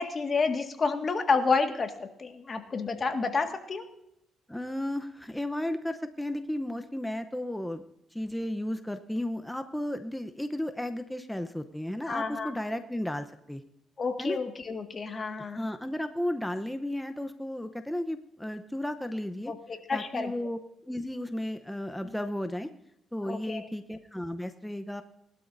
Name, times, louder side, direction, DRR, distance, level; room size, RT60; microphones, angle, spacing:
voice 1, 0.0-3.8 12.0-12.5 14.0-15.7 19.5-20.3 23.3-23.7, left 4 dB, 40° left, 5 dB, 1.8 m, -30 dB
voice 2, 4.5-7.8 8.1-13.6 14.2-14.4 15.4-19.5 19.9-22.7 23.1-25.0, left 1 dB, 5° left, 8 dB, 0.8 m, -34 dB
20.0 x 12.5 x 2.7 m, 0.77 s
cardioid pair, 90°, 0 cm